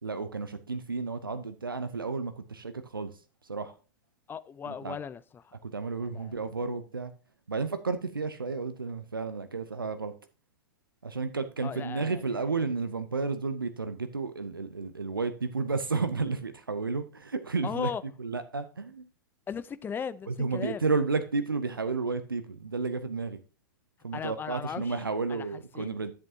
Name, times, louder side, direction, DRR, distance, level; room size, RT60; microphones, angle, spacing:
voice 1, 0.0-3.8 4.7-5.0 5.6-7.1 7.5-10.1 11.0-17.9 18.2-19.1 20.3-23.4 24.0-26.1, right 4 dB, 90° right, 0.7 m, -32 dB
voice 2, 4.3-5.5 6.0-6.3 11.6-12.2 17.6-18.0 19.5-20.8 24.1-25.0 25.3-25.5 25.7-25.9, left 7 dB, 20° left, 0.5 m, -37 dB
10.5 x 7.5 x 2.8 m
figure-of-eight pair, 95°, 11 cm